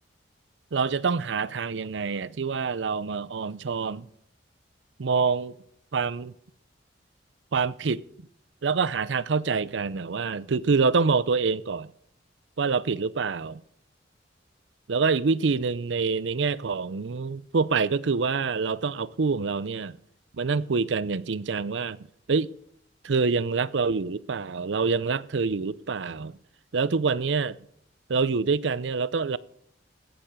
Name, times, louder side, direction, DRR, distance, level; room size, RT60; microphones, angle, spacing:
voice 1, 0.7-4.1 5.0-5.5 5.9-6.3 7.5-8.0 8.6-11.9 12.6-13.6 14.9-20.0 20.3-22.0 22.3-22.5 23.0-26.4 26.7-27.6 28.1-29.4, right 4 dB, 80° right, 0.6 m, -26 dB
16.5 x 7.0 x 6.5 m
head